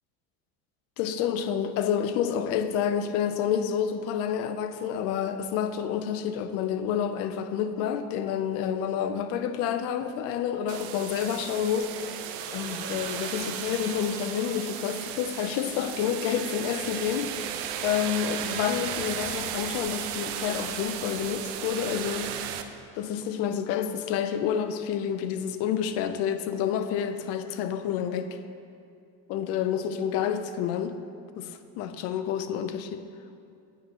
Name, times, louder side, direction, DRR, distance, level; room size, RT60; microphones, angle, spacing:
voice 1, 1.0-11.9 12.5-22.3 22.9-28.4 29.3-31.0 31.4-33.0, left 8 dB, 50° left, 0.5 m, -29 dB
sound 1, 10.7-22.6, right 9 dB, 85° right, 0.6 m, -35 dB
8.5 x 8.4 x 2.9 m
cardioid pair, 165°, 32 cm